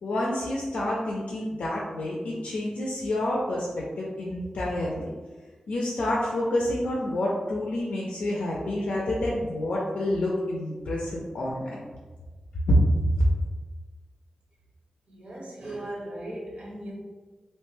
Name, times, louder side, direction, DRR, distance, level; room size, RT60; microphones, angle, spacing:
voice 1, 0.0-5.1 5.7-11.8 12.7-12.8 13.2-13.3, left 1 dB, 90° left, -4 dB, 0.4 m, -28 dB
voice 2, 15.1-16.9, right 1 dB, 75° right, -3 dB, 0.8 m, -37 dB
2.9 x 2.1 x 3.1 m, 1.3 s
cardioid pair, 60°, 2 cm